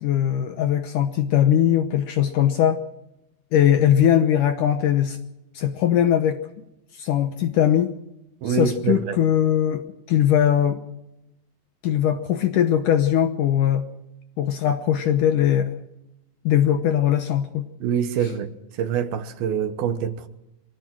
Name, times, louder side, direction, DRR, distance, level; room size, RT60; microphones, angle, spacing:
voice 1, 0.0-2.8 3.5-5.2 5.5-6.4 7.0-7.9 8.5-9.8 10.1-10.8 11.8-13.8 14.4-15.7 16.5-17.7, left 10 dB, 70° left, 2.1 m, -20 dB
voice 2, 8.4-9.2 17.8-20.3, right 8 dB, 70° right, 3.0 m, -25 dB
24.0 x 17.5 x 6.2 m
omnidirectional pair, 4.7 m